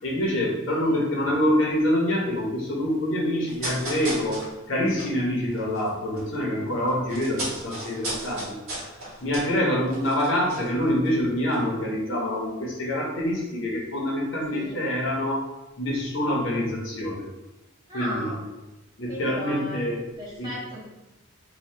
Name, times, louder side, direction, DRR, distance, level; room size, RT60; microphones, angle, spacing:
voice 1, 0.0-4.4 4.7-8.5 9.2-15.4 15.8-17.3 17.9-18.3 19.0-20.0 20.4-20.5, left 1 dB, 70° left, -3 dB, 0.8 m, -26 dB
sound 1, 3.5-6.3 6.6-11.2 11.5-11.6, right 1 dB, 90° right, 1.2 m, -36 dB
voice 2, 14.5-14.8 17.9-18.4 19.1-19.8 20.2-20.8, equal, 20° right, -6 dB, 0.8 m, -36 dB
2.7 x 2.3 x 3.3 m, 1.0 s
head